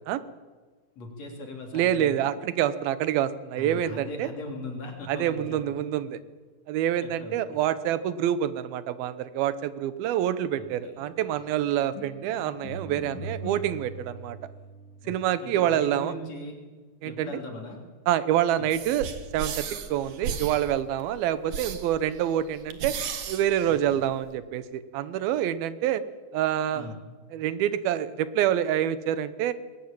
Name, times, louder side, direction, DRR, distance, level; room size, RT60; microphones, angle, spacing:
voice 1, 1.0-2.4 3.6-5.6 7.0-7.4 10.6-10.9 15.0-16.6 17.0-17.8 23.9-24.0 26.7-27.0, left 2 dB, 45° left, 2 dB, 4.2 m, -39 dB
voice 2, 1.7-4.3 5.1-6.2 6.7-14.4 15.1-16.1 17.0-17.3 18.1-19.1 19.3-23.0 23.3-26.0 26.3-26.9 27.3-29.5, right 11 dB, 85° right, 14 dB, 2.8 m, -27 dB
sound 1, 11.1-15.2, right 1 dB, 65° left, 4.9 m, -41 dB
sound 2, 18.7-24.3, right 7 dB, 60° right, 2.8 m, -36 dB
20.5 x 17.0 x 8.9 m, 1.4 s
omnidirectional pair, 4.2 m